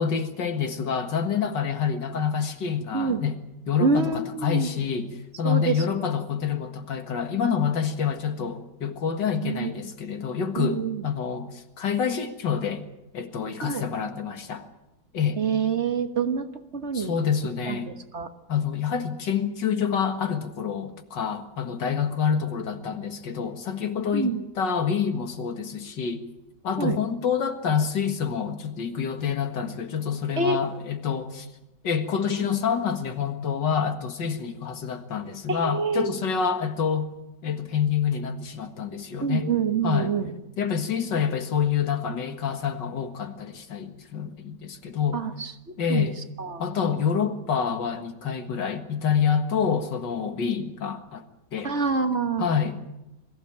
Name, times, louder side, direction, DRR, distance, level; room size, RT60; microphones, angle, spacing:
voice 1, 0.0-3.4 3.7-12.8 13.1-14.7 15.1-15.4 16.9-17.9 18.5-26.2 26.6-31.5 31.8-37.1 37.4-39.5 39.8-40.1 40.6-45.2 45.8-46.2 46.6-51.2 51.5-51.7 52.4-52.8, left 7 dB, 85° left, 7 dB, 2.4 m, -27 dB
voice 2, 3.8-4.8 5.4-5.8 8.4-8.5 9.4-9.8 10.5-11.1 13.6-13.8 15.4-16.5 16.7-17.1 17.7-18.3 24.1-24.5 26.8-27.0 30.4-30.6 35.5-36.2 39.2-40.3 45.1-45.5 45.9-46.1 46.4-46.6 51.6-52.5, right 5 dB, 40° right, 8 dB, 1.5 m, -26 dB
22.5 x 15.5 x 8.8 m, 0.91 s
omnidirectional pair, 1.9 m